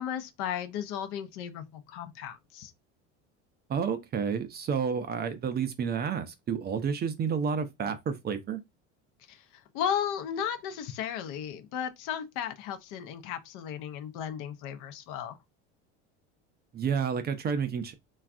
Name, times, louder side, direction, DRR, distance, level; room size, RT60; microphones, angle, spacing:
voice 1, 0.0-2.7 9.3-9.4 9.7-15.4, left 9 dB, 65° left, 0.6 m, -35 dB
voice 2, 3.7-8.6 16.7-17.9, right 6 dB, 30° right, 0.4 m, -30 dB
3.2 x 2.3 x 2.4 m
hypercardioid pair, 85°, 34 cm